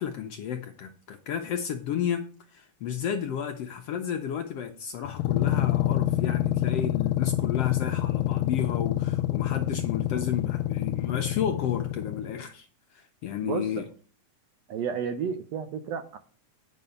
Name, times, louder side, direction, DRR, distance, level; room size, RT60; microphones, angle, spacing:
voice 1, 0.0-2.2 2.5-12.7 12.9-13.9, left 8 dB, 70° left, 5 dB, 1.5 m, -32 dB
sound 1, 5.1-12.4, left 13 dB, 85° left, 2.1 m, -27 dB
voice 2, 14.7-16.2, right 7 dB, 70° right, 8 dB, 1.7 m, -31 dB
9.3 x 5.4 x 6.9 m, 0.40 s
omnidirectional pair, 3.6 m